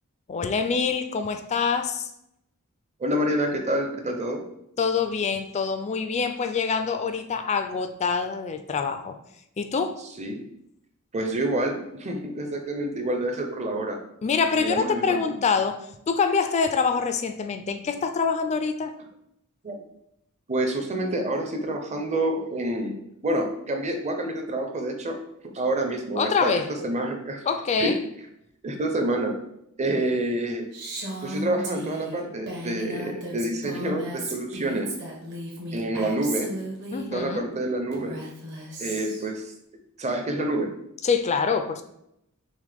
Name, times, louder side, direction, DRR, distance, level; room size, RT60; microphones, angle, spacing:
voice 1, 0.3-2.1 4.8-9.2 9.6-10.0 14.2-18.9 26.1-26.7 27.4-28.0 35.9-36.0 36.9-37.5 41.0-41.8, left 5 dB, 30° left, 0.3 m, -25 dB
voice 2, 3.0-4.4 10.2-10.4 11.1-14.0 14.6-15.2 19.6-19.7 20.5-23.0 23.2-25.2 25.5-27.4 27.8-28.0 28.6-29.3 29.8-30.7 31.2-34.9 35.7-36.5 37.1-38.2 38.8-39.5 40.0-40.7, right 1 dB, 30° right, 0.6 m, -27 dB
Female speech woman speaking, 30.7-37.1 37.9-39.3, right 1 dB, 50° right, 1.1 m, -35 dB
6.2 x 2.1 x 3.4 m
head